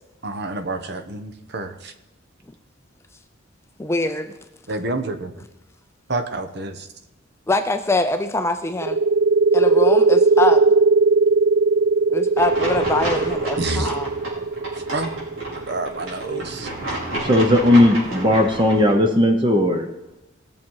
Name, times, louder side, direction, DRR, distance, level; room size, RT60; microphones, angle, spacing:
voice 1, 0.2-1.9 4.7-5.4 6.1-6.9 13.6-13.9 14.9-15.1 15.7-16.7, right 2 dB, 55° right, 7 dB, 1.0 m, -28 dB
voice 2, 3.8-4.3 7.5-9.0 9.5-10.6 12.1-14.1, left 2 dB, 15° left, 8 dB, 0.5 m, -23 dB
sound 1, 8.8-16.2, right 3 dB, 70° right, 0.5 m, -18 dB
sound 2, 12.4-18.9, right 1 dB, 85° right, 4.7 m, -31 dB
voice 3, 17.2-19.9, left 1 dB, 25° right, 4 dB, 0.8 m, -16 dB
18.5 x 7.3 x 4.7 m, 0.95 s
head